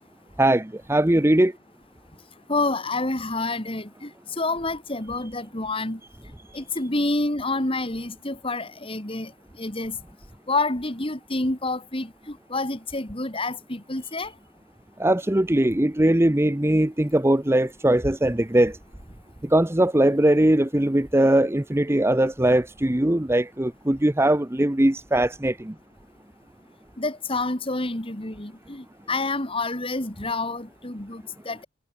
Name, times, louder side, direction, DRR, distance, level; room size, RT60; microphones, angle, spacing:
voice 1, 0.4-1.5 15.0-18.8 19.4-25.7, right 1 dB, 10° right, 0.7 m, -20 dB
voice 2, 2.5-4.1 4.4-6.0 6.5-9.3 9.6-10.0 10.5-14.3 27.0-31.7, left 2 dB, 25° left, 2.5 m, -28 dB
head